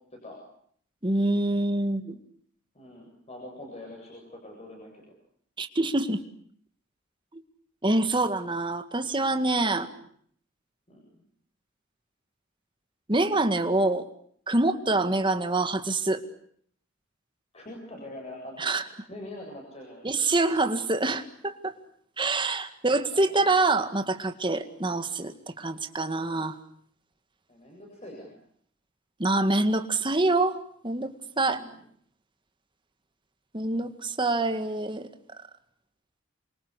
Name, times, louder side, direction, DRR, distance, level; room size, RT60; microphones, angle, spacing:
voice 1, 1.0-2.2 5.6-6.2 7.3-7.4 7.8-9.9 13.1-14.1 14.5-16.2 18.6-18.8 20.0-21.7 22.2-26.6 29.2-30.6 30.8-31.6 33.5-35.1, right 2 dB, 25° right, 9 dB, 2.0 m, -26 dB
voice 2, 2.7-5.0 9.9-10.0 10.9-11.2 14.9-15.1 17.5-20.1 23.1-23.4 27.5-28.3 31.5-31.8, left 1 dB, 30° left, 0 dB, 7.8 m, -44 dB
28.0 x 24.5 x 8.3 m, 0.64 s
head